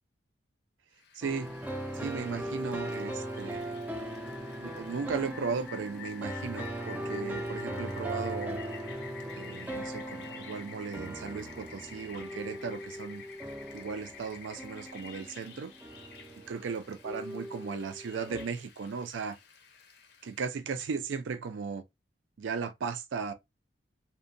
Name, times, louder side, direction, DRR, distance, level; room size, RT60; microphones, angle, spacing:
Rain, 1.0-20.5, left 7 dB, 60° left, 0.5 m, -50 dB
voice 1, 1.1-1.5 1.9-3.8 4.6-8.6 9.3-13.2 13.7-15.7 16.5-19.4 20.2-21.8 22.4-23.3, right 5 dB, 80° right, 0.4 m, -36 dB
sound 1, 1.2-18.4, right 1 dB, 10° right, 0.3 m, -39 dB
2.7 x 2.1 x 2.5 m
head